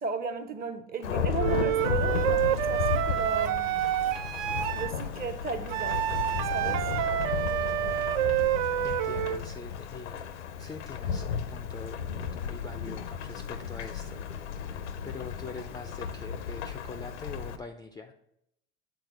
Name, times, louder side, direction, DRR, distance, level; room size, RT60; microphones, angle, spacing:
voice 1, 0.0-3.7 4.7-6.9, right 4 dB, 25° right, 0.7 m, -35 dB
Thunderstorm / Rain, 1.0-17.6, left 7 dB, 90° left, 0.6 m, -34 dB
Wind instrument woodwind instrument, 1.4-4.9 5.7-9.4, right 12 dB, 55° right, 0.4 m, -28 dB
voice 2, 8.8-10.3 10.6-18.1, left 4 dB, 10° left, 0.3 m, -44 dB
7.1 x 3.7 x 4.7 m
hypercardioid pair, 85°, 34 cm